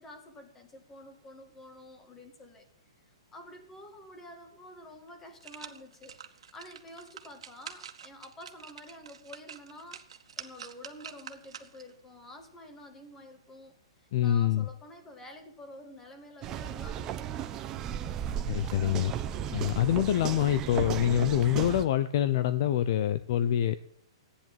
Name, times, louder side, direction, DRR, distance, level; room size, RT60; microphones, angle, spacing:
voice 1, 0.0-2.7 3.3-6.2 6.5-10.0 10.4-13.7 14.2-17.3, left 1 dB, 10° left, 6 dB, 2.0 m, -49 dB
sound 1, 4.5-4.6 5.1-11.9 12.4-12.5, right 7 dB, 80° right, 1.7 m, -47 dB
voice 2, 14.1-14.7 18.5-19.1 19.5-23.7, left 11 dB, 40° left, 13 dB, 0.7 m, -26 dB
sound 2, 16.4-21.8, right 9 dB, 20° right, 0.8 m, -35 dB
15.5 x 10.0 x 7.4 m, 0.68 s
hypercardioid pair, 170°, 3 cm